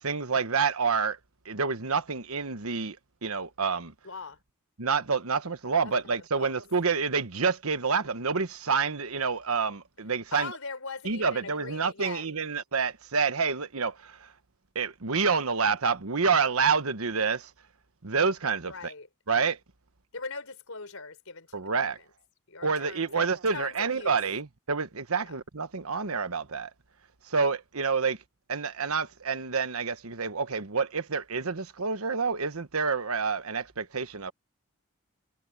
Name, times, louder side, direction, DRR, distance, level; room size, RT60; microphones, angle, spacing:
voice 1, 0.0-1.2 1.4-3.9 4.8-10.5 11.0-14.3 14.7-17.5 18.0-18.9 19.3-19.6 21.5-22.0 22.6-26.7 27.2-28.2 28.5-34.3, right 5 dB, 90° right, 1.3 m, -28 dB
voice 2, 4.0-4.4 5.8-6.5 10.3-12.3 18.7-19.1 20.1-22.0 22.5-24.2 25.2-25.3, left 4 dB, 80° left, 4.1 m, -41 dB
head